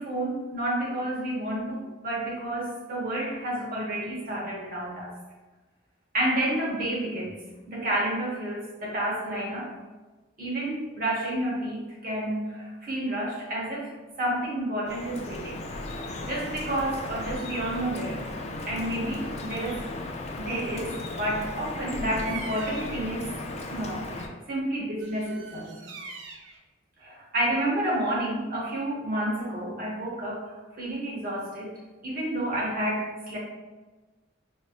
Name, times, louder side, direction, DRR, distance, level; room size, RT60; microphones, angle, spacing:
voice 1, 0.0-5.1 6.1-7.4 7.7-9.7 10.4-15.6 16.2-18.3 18.6-19.8 20.4-23.3 23.7-25.8 27.0-33.4, right 1 dB, 50° right, -4 dB, 1.0 m, -30 dB
Drip, 14.9-24.3, left 2 dB, 35° left, 0.3 m, -36 dB
Bird vocalization bird call bird song, 22.1-23.1 25.0-26.6, right 5 dB, 75° right, 0.5 m, -42 dB
5.2 x 2.2 x 2.4 m, 1.2 s
head